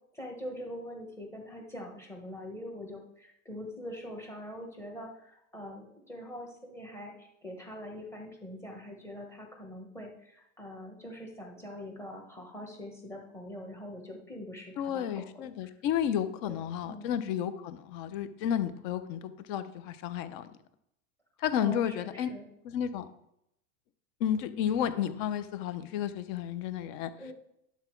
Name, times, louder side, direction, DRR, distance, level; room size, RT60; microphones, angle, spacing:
voice 1, 0.1-15.1 15.3-15.7 16.4-17.1 21.5-22.5 27.2-27.3, left 1 dB, 5° left, 2 dB, 1.1 m, -43 dB
voice 2, 14.8-20.5 21.4-22.3 22.6-23.1 24.2-27.1, left 9 dB, 40° left, 11 dB, 0.8 m, -32 dB
11.0 x 7.1 x 4.5 m, 0.79 s
supercardioid pair, 175°, 40 cm